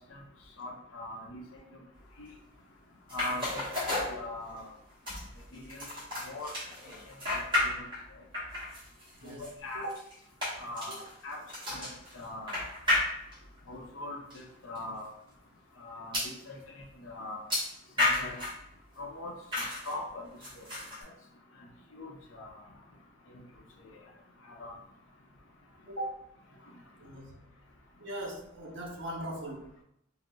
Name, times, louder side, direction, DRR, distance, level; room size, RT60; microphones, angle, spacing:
voice 1, 0.6-1.8 2.2-2.3 3.1-4.7 5.5-5.9 6.2-6.5 7.3-7.9 9.2-9.8 10.6-11.4 11.7-12.6 13.7-15.1 15.8-17.4 18.0-18.4 19.0-20.3 20.6-20.7 21.0-21.1 21.9-22.5 24.4-24.7, left 2 dB, 70° left, 0 dB, 0.6 m, -42 dB
sound 1, 3.1-4.7 5.1-8.1 8.3-13.6 14.3-14.4 14.7-14.8 16.1-16.4 17.5-18.6 19.5-19.9 20.4-21.0, left 2 dB, 20° right, 1.2 m, -33 dB
voice 2, 25.9-26.2 27.0-27.6 28.0-29.8, right 1 dB, 60° right, -2 dB, 0.8 m, -40 dB
3.8 x 2.0 x 2.2 m, 0.76 s
head